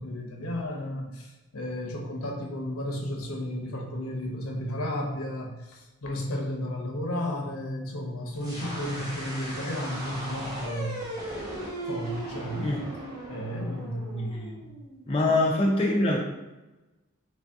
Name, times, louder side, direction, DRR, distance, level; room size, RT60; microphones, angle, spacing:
voice 1, 0.0-11.1 11.9-12.7 13.3-14.7 15.3-15.4, left 1 dB, 80° left, 1 dB, 0.7 m, -33 dB
sound 1, 8.4-15.2, right 1 dB, 15° right, 0.7 m, -38 dB
voice 2, 15.1-16.2, left 2 dB, 25° left, -2 dB, 0.4 m, -23 dB
3.3 x 2.6 x 3.4 m, 1.1 s
head